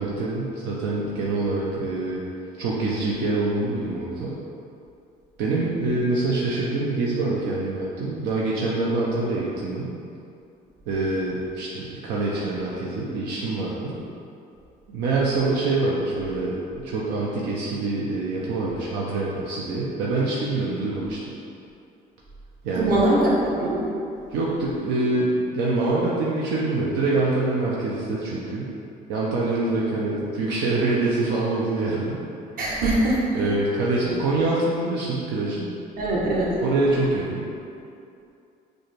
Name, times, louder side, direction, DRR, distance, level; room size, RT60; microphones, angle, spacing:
voice 1, 0.0-2.2 2.6-4.3 5.4-9.9 10.9-14.0 14.9-21.2 22.6-23.0 24.3-28.7 29.1-32.2 33.3-35.7 36.6-37.5, right 2 dB, 85° right, -5 dB, 0.6 m, -25 dB
voice 2, 22.7-23.8 32.6-33.4 34.0-34.2 36.0-36.5, right 1 dB, 55° right, -6 dB, 1.1 m, -22 dB
6.2 x 2.2 x 3.2 m, 2.5 s
cardioid pair, 110°, 17 cm